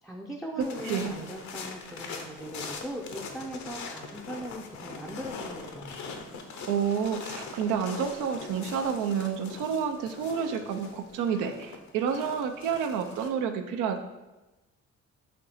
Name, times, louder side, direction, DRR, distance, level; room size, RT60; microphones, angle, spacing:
voice 1, 0.0-6.0, right 1 dB, ahead, 0 dB, 0.4 m, -39 dB
sound 1, 0.6-13.3, left 4 dB, 70° left, 0.7 m, -42 dB
voice 2, 0.6-1.1 6.7-14.0, right 7 dB, 85° right, 6 dB, 0.5 m, -29 dB
4.3 x 2.8 x 4.1 m, 1.1 s
cardioid pair, 90°, 30 cm